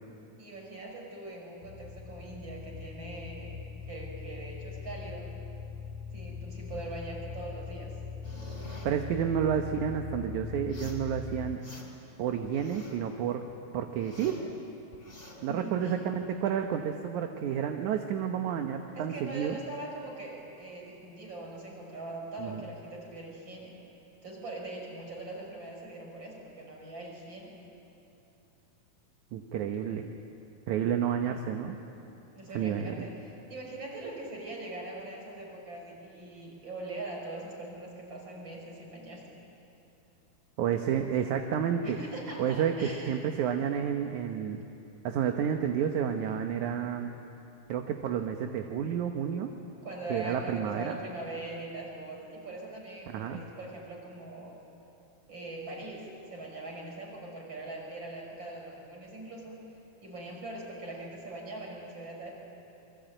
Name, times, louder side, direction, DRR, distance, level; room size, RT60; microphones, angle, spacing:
voice 1, 0.4-3.6 3.9-5.3 6.1-7.9 15.4-16.0 18.9-23.8 24.2-27.6 32.3-39.4 41.8-43.4 49.8-54.6 55.3-59.6 60.0-62.4, right 2 dB, 30° right, -1 dB, 6.2 m, -42 dB
sound 1, 1.6-11.6, left 5 dB, 85° left, 1.5 m, -41 dB
sound 2, 8.2-8.9 10.6-11.1 11.4-12.1 12.4-13.1 13.5-14.5 14.9-15.4, left 1 dB, 15° left, 4.4 m, -48 dB
voice 2, 8.8-11.6 12.2-13.4 13.7-14.4 15.4-19.6 22.4-22.6 29.3-30.1 30.7-31.8 32.5-33.1 40.6-42.0 42.4-44.6 45.0-47.1 47.7-49.5 50.1-51.0 53.1-53.4, right 8 dB, 65° right, 5 dB, 2.2 m, -30 dB
28.0 x 23.5 x 9.0 m, 2.8 s
omnidirectional pair, 4.2 m